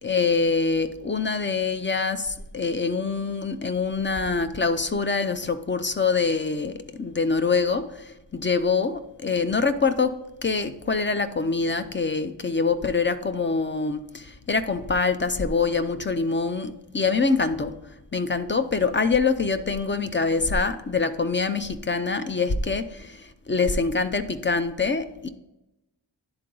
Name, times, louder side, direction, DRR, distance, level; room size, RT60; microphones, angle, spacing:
voice 1, 0.0-10.2 10.4-17.7 18.1-25.3, left 4 dB, 25° left, 10 dB, 0.4 m, -25 dB
10.5 x 3.8 x 3.7 m, 0.94 s
wide cardioid pair, 75°, 46 cm